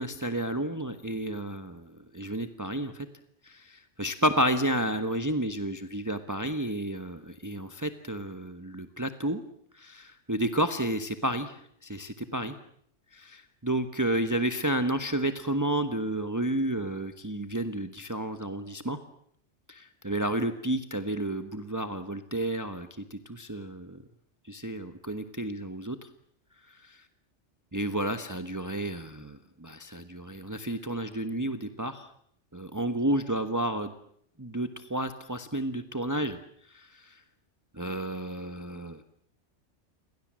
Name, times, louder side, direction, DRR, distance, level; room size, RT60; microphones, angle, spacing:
voice 1, 0.0-3.1 3.4-9.4 9.7-12.5 13.1-19.0 19.7-24.0 24.5-26.1 26.7-27.0 27.7-32.1 32.5-33.9 34.4-36.4 36.7-37.2 37.7-39.0, right 1 dB, 15° right, 9 dB, 1.4 m, -31 dB
29.5 x 23.5 x 7.6 m, 0.68 s
omnidirectional pair, 1.2 m